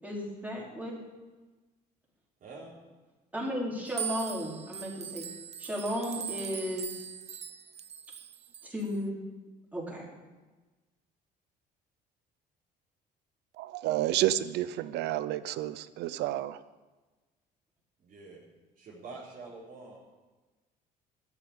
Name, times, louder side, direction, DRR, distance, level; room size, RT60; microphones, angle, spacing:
voice 1, 0.0-1.0 3.3-5.2 5.6-6.9 8.7-9.2 9.7-10.1, equal, 10° right, -4 dB, 4.7 m, -34 dB
voice 2, 2.4-2.8 18.0-18.4 18.8-20.0, right 3 dB, 55° right, -7 dB, 4.2 m, -46 dB
sound 1, 3.9-8.9, right 8 dB, 40° right, 0.7 m, -40 dB
voice 3, 13.6-16.6, right 13 dB, 85° right, 15 dB, 0.7 m, -30 dB
13.5 x 8.2 x 8.7 m, 1.2 s
cardioid pair, 110°, 17 cm